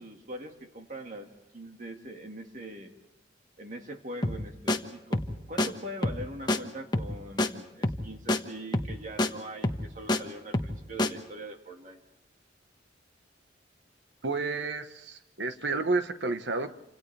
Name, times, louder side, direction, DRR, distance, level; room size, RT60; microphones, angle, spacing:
voice 1, 0.0-2.9 3.6-5.2 5.5-12.0, right 1 dB, 45° right, 3 dB, 1.9 m, -42 dB
sound 1, 4.2-4.4 4.7-4.8 5.1-5.3 5.6-5.7 6.0-6.2 6.5-6.6 6.9-7.1 7.4-7.5 7.8-8.0 8.3-8.4 8.7-8.9 9.2-9.3 9.6-10.2 10.5-10.7 11.0-11.1, left 1 dB, 25° left, 1.3 m, -27 dB
voice 2, 14.2-16.7, right 3 dB, 65° right, 8 dB, 1.2 m, -30 dB
29.0 x 26.5 x 3.4 m, 0.89 s
head